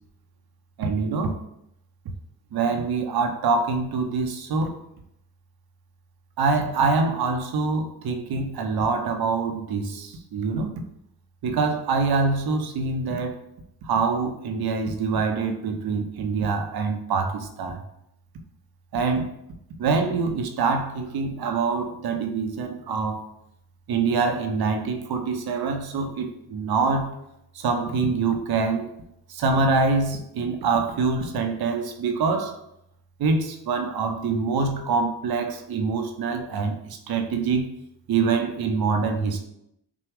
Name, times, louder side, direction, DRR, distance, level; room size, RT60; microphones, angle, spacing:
voice 1, 0.8-1.4 2.5-4.8 6.4-10.7 11.4-13.3 13.8-17.8 18.9-19.3 19.8-23.2 23.9-27.1 27.5-28.9 29.3-32.5 33.2-37.7 38.1-39.5, right 4 dB, 65° right, 6 dB, 0.8 m, -25 dB
6.0 x 2.3 x 3.5 m, 0.79 s
cardioid pair, 75°, 40 cm